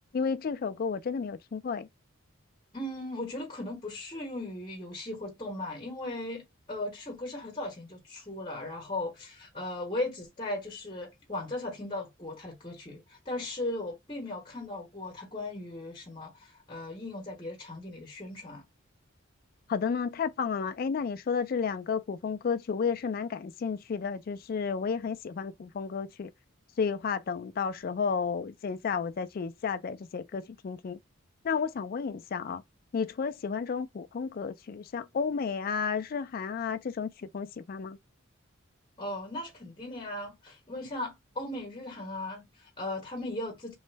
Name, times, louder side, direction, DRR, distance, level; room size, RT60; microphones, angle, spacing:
voice 1, 0.1-1.9 19.7-26.3 26.8-31.0 31.4-32.6 32.9-38.0, left 6 dB, 45° left, 0.3 m, -32 dB
voice 2, 2.7-18.6 39.0-43.7, left 2 dB, 20° left, 1.0 m, -37 dB
3.1 x 2.1 x 3.2 m
head